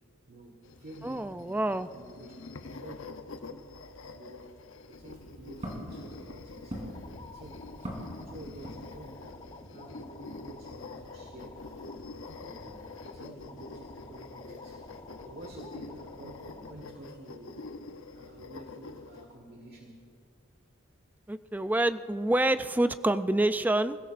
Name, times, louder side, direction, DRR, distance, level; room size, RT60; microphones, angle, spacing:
voice 1, 0.3-3.1 3.5-3.6 4.1-4.6 4.8-6.8 7.2-7.8 8.2-12.0 12.3-14.8 15.2-17.6 18.1-20.1, right 1 dB, 55° right, 2 dB, 1.5 m, -50 dB
sound 1, 0.6-19.3, left 3 dB, 85° left, 0.8 m, -46 dB
voice 2, 1.0-1.9 21.3-24.0, right 1 dB, 10° right, 11 dB, 0.4 m, -27 dB
Walk footsteps, 4.8-9.3, equal, 35° right, 3.8 m, -43 dB
sound 2, 6.9-16.9, left 2 dB, 30° left, 0.9 m, -50 dB
29.0 x 16.5 x 2.5 m, 2.6 s
head